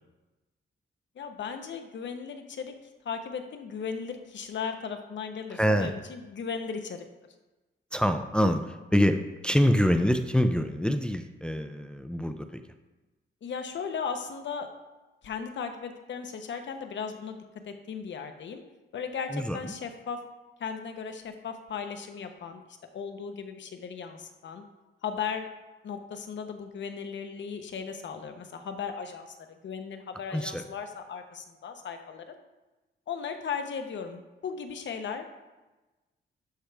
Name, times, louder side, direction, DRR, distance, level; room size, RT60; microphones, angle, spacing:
voice 1, 1.2-2.7 3.0-7.0 13.4-14.7 15.2-17.4 17.7-18.6 18.9-20.2 20.6-22.6 22.9-24.6 25.0-25.5 25.8-29.3 29.6-32.2 33.1-35.2, left 6 dB, 65° left, 6 dB, 0.9 m, -36 dB
voice 2, 5.5-5.9 7.9-12.6 19.3-19.7 30.3-30.6, equal, 5° left, 8 dB, 0.4 m, -25 dB
11.5 x 5.8 x 3.4 m, 1.1 s
wide cardioid pair, 140°, 20 cm